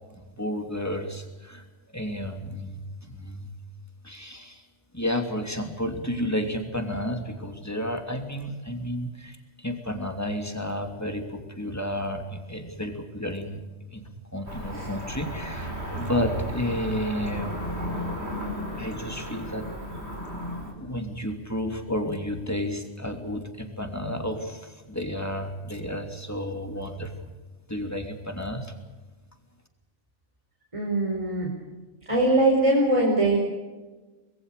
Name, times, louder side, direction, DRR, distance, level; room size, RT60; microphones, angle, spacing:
voice 1, 0.1-1.6 1.9-3.5 4.0-4.6 4.9-13.6 13.9-17.9 18.8-19.6 20.8-27.1 27.7-28.7, left 1 dB, 15° left, 4 dB, 3.0 m, -31 dB
Cricket / Motor vehicle (road), 14.5-20.7, equal, 60° right, 5.1 m, -34 dB
voice 2, 30.7-31.5 32.1-33.4, right 2 dB, 25° right, -2 dB, 4.6 m, -22 dB
25.0 x 21.0 x 6.8 m, 1.2 s
omnidirectional pair, 1.2 m